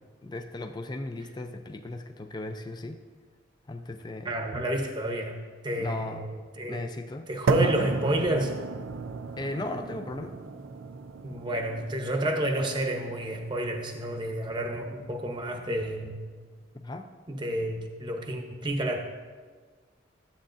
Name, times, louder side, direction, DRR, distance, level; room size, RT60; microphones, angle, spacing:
voice 1, 0.2-3.0 3.7-4.3 5.8-6.3 6.7-7.3 7.6-7.9 9.4-10.4 16.7-17.1, left 2 dB, 20° left, 6 dB, 0.4 m, -36 dB
voice 2, 4.2-5.4 5.6-6.8 7.3-8.5 11.2-16.2 17.3-19.0, right 1 dB, 25° right, 3 dB, 0.8 m, -30 dB
sound 1, 7.5-15.5, right 4 dB, 85° right, 0.4 m, -34 dB
12.5 x 8.3 x 2.5 m, 1.5 s
head